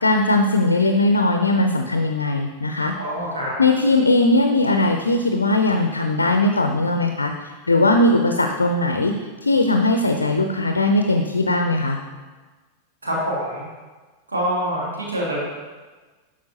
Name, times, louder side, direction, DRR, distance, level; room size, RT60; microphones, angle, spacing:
voice 1, 0.0-3.0 3.6-7.3 7.7-9.2 9.4-12.0, left 2 dB, 80° left, 5 dB, 0.5 m, -19 dB
voice 2, 3.0-3.5 13.0-13.6 14.3-15.4, equal, 80° right, -5 dB, 1.9 m, -25 dB
11.0 x 4.9 x 2.7 m, 1.3 s
figure-of-eight pair, 90°, 0 cm